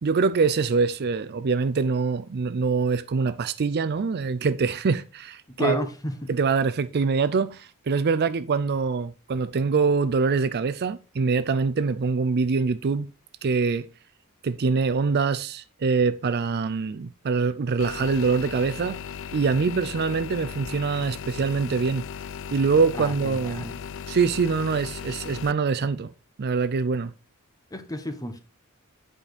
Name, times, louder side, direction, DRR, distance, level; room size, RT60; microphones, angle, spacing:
voice 1, 0.0-5.9 6.3-13.1 13.4-13.9 14.4-19.0 19.3-22.0 22.5-23.7 24.1-26.1 26.4-27.1, right 4 dB, 45° right, 0.4 m, -24 dB
voice 2, 5.6-6.3 23.0-23.7 27.7-28.4, left 1 dB, 15° left, 1.1 m, -31 dB
sound 1, 17.8-25.5, left 7 dB, 60° left, 0.4 m, -37 dB
8.6 x 5.2 x 4.1 m
head